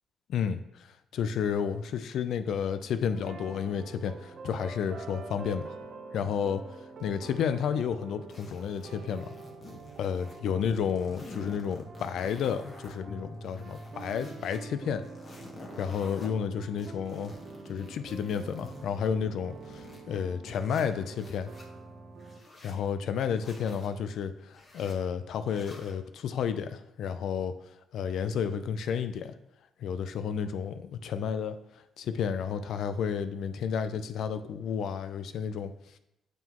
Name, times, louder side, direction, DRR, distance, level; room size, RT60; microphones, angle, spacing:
voice 1, 0.3-0.6 1.1-5.7 6.1-6.6 7.0-9.3 10.0-15.0 15.8-17.3 17.7-21.5 22.6-27.5 27.9-29.3 29.8-31.6 32.0-35.7, left 7 dB, 75° left, 10 dB, 0.4 m, -31 dB
sound 1, 3.1-22.4, right 3 dB, 55° right, 0.8 m, -46 dB
sound 2, 8.3-10.4 10.7-12.9 13.4-14.6 15.0-16.3 16.8-20.0 20.5-21.7 22.2-22.8 23.3-23.9 24.5-25.0 25.4-26.0, left 2 dB, 40° left, 1.3 m, -50 dB
9.2 x 3.7 x 3.0 m, 0.86 s
cardioid pair, 90°, 0 cm